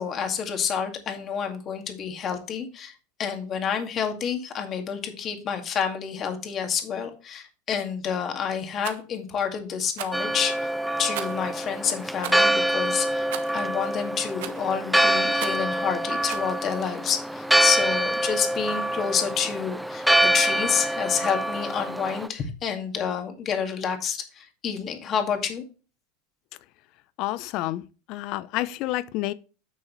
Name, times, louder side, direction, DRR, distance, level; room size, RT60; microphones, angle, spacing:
voice 1, 0.0-2.9 3.2-10.7 11.0-13.3 13.5-25.6, left 7 dB, 35° left, 2.1 m, -29 dB
Rattle, 8.8-9.0 9.9-10.2 11.1-11.5 12.2-12.4 13.3-13.6 14.4-14.7 15.4-15.7 16.3-16.5, right 12 dB, 75° right, 1.2 m, -36 dB
Church bell, 10.1-22.3, right 1 dB, ahead, 0.5 m, -25 dB
voice 2, 27.2-27.8 28.1-29.3, left 16 dB, 55° left, 0.7 m, -29 dB
9.8 x 6.4 x 3.2 m
supercardioid pair, 115°, 0 cm